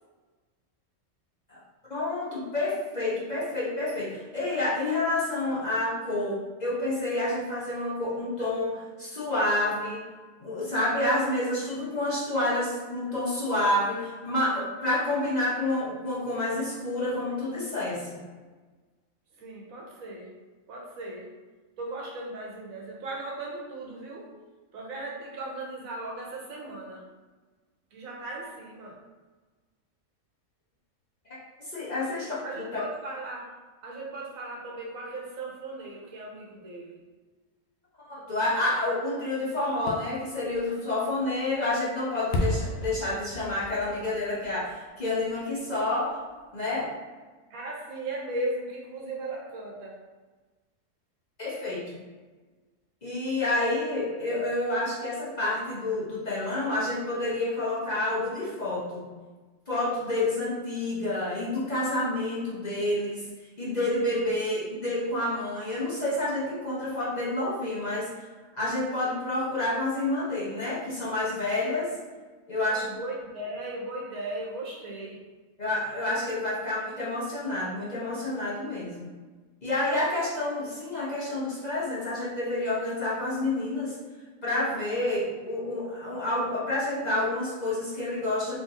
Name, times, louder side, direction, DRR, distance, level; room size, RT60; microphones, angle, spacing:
voice 1, 1.9-10.0 10.4-18.2 31.3-32.3 38.0-46.2 46.5-46.9 51.4-52.0 53.0-59.0 59.7-63.2 63.6-68.1 68.6-72.0 72.5-72.9 75.6-79.1 79.6-83.9 84.4-88.6, left 2 dB, 40° left, -7 dB, 0.8 m, -29 dB
voice 2, 19.4-20.3 20.7-21.3 21.8-24.3 24.7-27.0 27.9-29.0 32.0-32.1 32.4-33.5 33.8-37.0 47.5-49.9 64.2-64.7 72.5-75.2, right 2 dB, 80° right, -2 dB, 1.3 m, -37 dB
Fireworks, 39.7-45.6 46.0-46.1, left 1 dB, 75° left, 1.0 m, -35 dB
3.8 x 3.2 x 2.8 m, 1.3 s
omnidirectional pair, 1.4 m